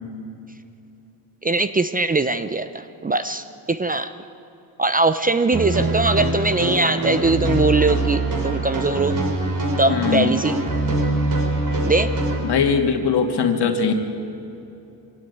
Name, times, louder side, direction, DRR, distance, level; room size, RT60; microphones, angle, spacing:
voice 1, 1.4-4.1 4.8-9.2 9.8-10.6 11.8-12.1, right 3 dB, 20° right, 11 dB, 0.7 m, -21 dB
sound 1, 5.5-12.4, right 1 dB, 45° right, 5.2 m, -23 dB
voice 2, 9.9-10.3 12.4-13.9, left 6 dB, 60° left, 5 dB, 2.6 m, -20 dB
24.5 x 17.0 x 9.4 m, 2.9 s
cardioid pair, 95°, 45 cm